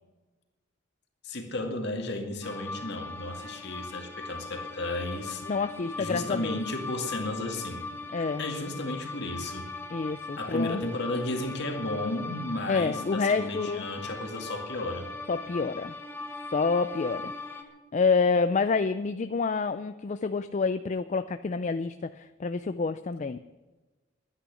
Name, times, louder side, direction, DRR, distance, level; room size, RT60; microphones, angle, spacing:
voice 1, 1.2-5.4 6.0-7.8 8.4-9.7 10.4-15.1, left 2 dB, 55° left, 4 dB, 2.2 m, -33 dB
sound 1, 2.4-17.6, left 3 dB, 10° left, 1.4 m, -40 dB
voice 2, 5.4-6.6 8.1-8.4 9.9-10.8 12.7-13.8 15.3-16.0 16.5-17.3 17.9-23.4, left 4 dB, 35° left, 11 dB, 0.4 m, -28 dB
11.5 x 10.0 x 9.8 m, 1.2 s
head